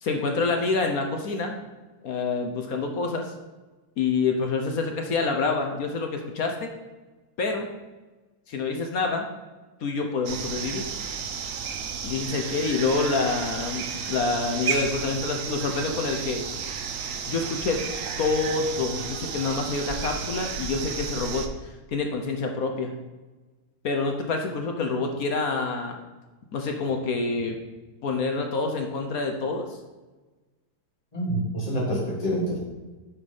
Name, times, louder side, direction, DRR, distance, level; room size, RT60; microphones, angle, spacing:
voice 1, 0.0-1.6 2.0-3.3 4.0-6.7 7.4-7.7 8.5-9.3 9.8-10.9 12.0-16.4 17.3-17.8 18.2-21.5 21.9-22.9 23.8-26.0 26.5-27.6 28.0-29.8, left 4 dB, 60° left, 3 dB, 1.0 m, -27 dB
sound 1, 10.2-21.5, right 6 dB, 80° right, 0.7 m, -32 dB
voice 2, 31.1-32.6, equal, 15° left, -6 dB, 2.5 m, -27 dB
8.1 x 5.0 x 5.5 m, 1.2 s
omnidirectional pair, 2.3 m